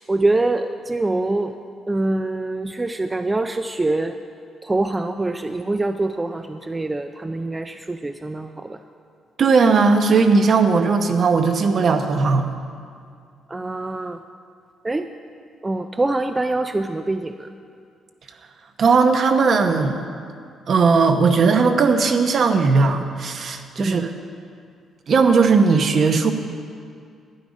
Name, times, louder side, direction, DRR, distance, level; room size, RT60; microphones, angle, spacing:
voice 1, 0.1-1.6 1.9-4.1 4.6-8.8 13.5-14.2 14.8-15.1 15.6-17.5 23.8-24.1, right 2 dB, 20° right, 8 dB, 0.4 m, -24 dB
voice 2, 9.4-12.5 18.8-20.0 20.7-24.1 25.1-26.3, right 4 dB, 55° right, 6 dB, 0.9 m, -17 dB
12.0 x 9.2 x 5.2 m, 2.3 s
cardioid pair, 90°, 0 cm